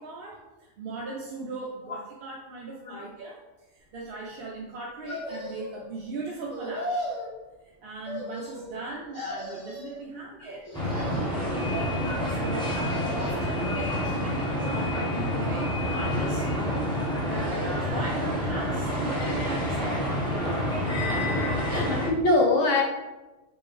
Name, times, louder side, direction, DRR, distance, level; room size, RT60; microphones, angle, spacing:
voice 1, 0.0-7.1 7.6-11.8 12.3-16.5 17.1-20.3, right 3 dB, 60° right, -3 dB, 0.7 m, -38 dB
sound 1, 5.0-5.9 6.5-7.3 8.0-8.8 9.1-10.0 10.6-11.4 12.6-13.6 14.1-14.8 15.4-16.2 17.2-18.0 18.8-19.7 20.1-20.2, left 1 dB, 35° left, 1.4 m, -38 dB
sound 2, 10.7-22.1, equal, 5° left, 1.1 m, -28 dB
voice 2, 21.7-22.8, left 2 dB, 70° left, -1 dB, 1.1 m, -23 dB
4.4 x 3.4 x 3.2 m, 1.1 s
omnidirectional pair, 1.3 m